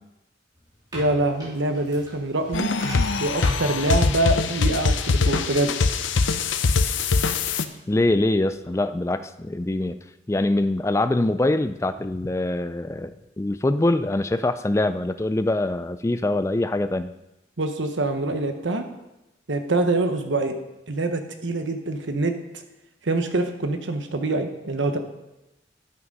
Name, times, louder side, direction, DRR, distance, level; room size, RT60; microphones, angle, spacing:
sound 1, 0.5-6.8, equal, 20° right, 3.6 m, -43 dB
voice 1, 0.9-2.7 3.2-5.8 17.6-18.8 19.5-20.6 20.9-22.4 23.0-25.0, right 2 dB, 80° right, 7 dB, 1.0 m, -25 dB
sound 2, 2.5-7.6, left 4 dB, 90° left, 0.6 m, -23 dB
voice 2, 7.9-10.0 10.3-17.1, left 2 dB, 15° left, 11 dB, 0.3 m, -24 dB
11.0 x 6.2 x 5.4 m, 0.96 s
head